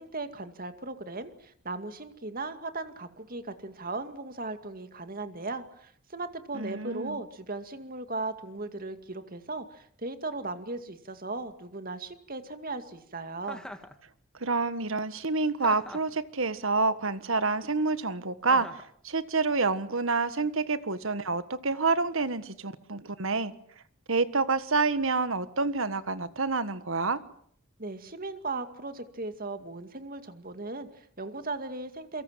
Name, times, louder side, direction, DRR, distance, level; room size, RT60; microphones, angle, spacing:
voice 1, 0.0-13.6 27.8-32.2, right 3 dB, 40° right, 9 dB, 2.2 m, -37 dB
voice 2, 6.5-7.2 14.4-23.5 24.1-27.2, right 3 dB, 65° right, 13 dB, 1.6 m, -28 dB
Chuckle chortle, 13.4-13.9 15.6-16.2 18.5-18.9, left 1 dB, 5° left, 1.9 m, -43 dB
28.0 x 24.0 x 7.5 m, 0.64 s
head